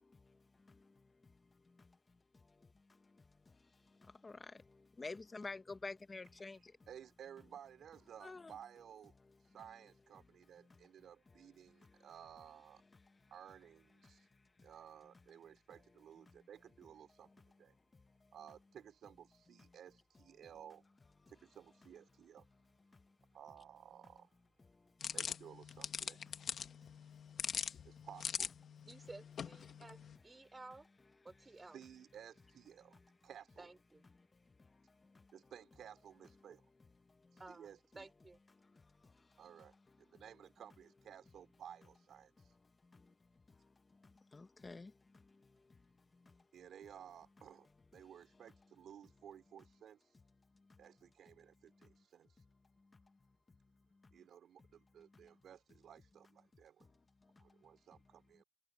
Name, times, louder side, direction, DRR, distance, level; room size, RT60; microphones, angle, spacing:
voice 1, 4.0-6.7 8.2-8.5 42.9-43.1 44.3-44.9, left 3 dB, 25° left, 1.3 m, -48 dB
voice 2, 6.4-9.1 9.5-12.8 13.3-14.3 14.6-17.3 17.6-17.7 18.3-20.8 21.3-22.5 23.3-24.3 25.1-26.2 27.8-28.5 31.7-33.7 35.3-36.6 37.3-38.1 39.4-42.5 46.5-50.1 50.8-52.4 54.1-56.9 57.4-58.4, right 9 dB, 80° right, 4.5 m, -56 dB
sound 1, 25.0-30.2, left 7 dB, 65° left, 1.3 m, -43 dB
voice 3, 28.9-30.9 31.2-31.8 33.6-34.1 37.4-37.7 37.9-38.4, right 3 dB, 20° right, 3.4 m, -54 dB
wide cardioid pair, 125°, 0 cm